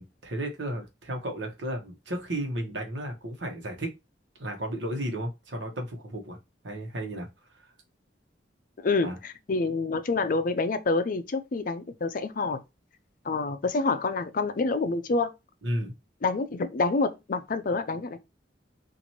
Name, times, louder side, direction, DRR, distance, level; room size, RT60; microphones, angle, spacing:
voice 1, 0.0-3.9 4.4-6.4 6.6-7.3 7.5-7.7 9.0-9.2 15.6-15.9, right 1 dB, 90° right, 1.0 m, -33 dB
voice 2, 8.8-12.6 13.2-15.3 16.2-18.2, left 3 dB, 50° left, 0.5 m, -27 dB
4.1 x 2.6 x 3.0 m
head